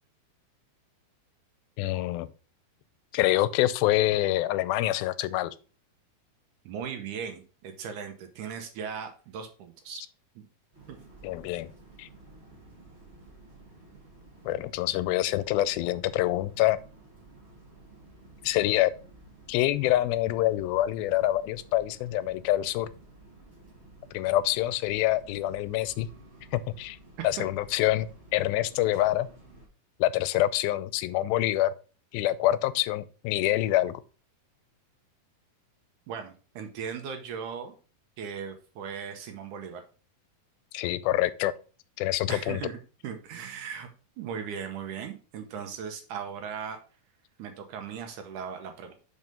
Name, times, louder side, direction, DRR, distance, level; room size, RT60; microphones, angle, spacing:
voice 1, 1.8-2.3 3.1-5.6 11.2-11.7 12.0-12.1 14.5-16.8 18.4-18.9 19.5-22.9 24.1-26.1 26.5-27.0 27.2-29.3 30.0-31.7 32.1-34.0 40.7-41.5 42.0-42.6, left 15 dB, 90° left, 2.4 m, -26 dB
voice 2, 6.7-10.0 10.4-10.5 10.9-11.0 27.2-27.5 36.1-37.7 38.2-39.8 42.3-43.9 44.2-46.8 47.4-48.9, right 7 dB, 75° right, 2.1 m, -38 dB
sound 1, 10.7-29.7, right 2 dB, 30° right, 1.2 m, -53 dB
5.5 x 4.8 x 5.2 m
omnidirectional pair, 4.1 m